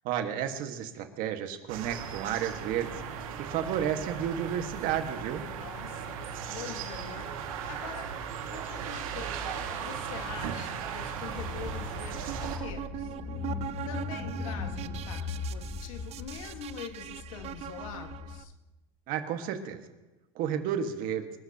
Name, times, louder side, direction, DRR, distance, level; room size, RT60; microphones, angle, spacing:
voice 1, 0.0-5.5 19.1-19.8 20.3-21.3, right 9 dB, 55° right, 6 dB, 1.7 m, -32 dB
sound 1, 1.7-12.6, right 7 dB, 90° right, 2.1 m, -37 dB
voice 2, 5.6-8.1 8.5-13.1 13.9-18.5, left 7 dB, 85° left, 5 dB, 1.8 m, -44 dB
Car / Engine, 11.4-18.4, left 4 dB, 30° left, 2.6 m, -39 dB
sound 2, 12.1-18.4, right 13 dB, 40° right, 0.5 m, -41 dB
26.0 x 13.0 x 2.9 m, 1.1 s
supercardioid pair, 115°, 17 cm